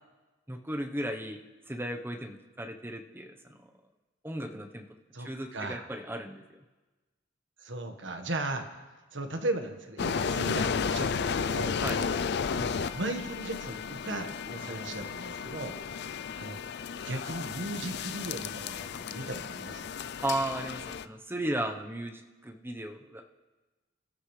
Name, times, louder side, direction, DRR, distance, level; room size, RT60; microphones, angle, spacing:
voice 1, 0.5-3.7 4.2-4.9 5.2-6.4 11.8-12.0 20.2-23.3, right 1 dB, 10° right, 4 dB, 1.0 m, -35 dB
voice 2, 5.1-5.8 7.6-8.7 9.1-11.7 12.5-15.7 16.4-16.6 17.0-19.9, right 2 dB, 65° right, 5 dB, 1.5 m, -37 dB
sound 1, 10.0-21.1, left 6 dB, 55° left, 0.4 m, -33 dB
28.5 x 13.5 x 3.3 m, 1.2 s
head